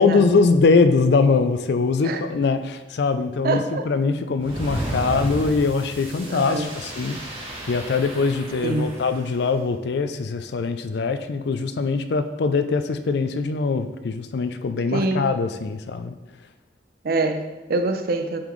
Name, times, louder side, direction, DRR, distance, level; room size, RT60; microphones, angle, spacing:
voice 1, 0.0-7.2 7.7-16.1, left 4 dB, 65° left, 9 dB, 0.4 m, -22 dB
voice 2, 3.4-3.9 6.3-6.7 8.6-9.0 14.9-15.3 17.0-18.4, right 3 dB, 55° right, 7 dB, 0.5 m, -25 dB
sound 1, 4.4-9.3, equal, 30° right, 1.6 m, -33 dB
8.6 x 3.9 x 3.1 m, 1.1 s
head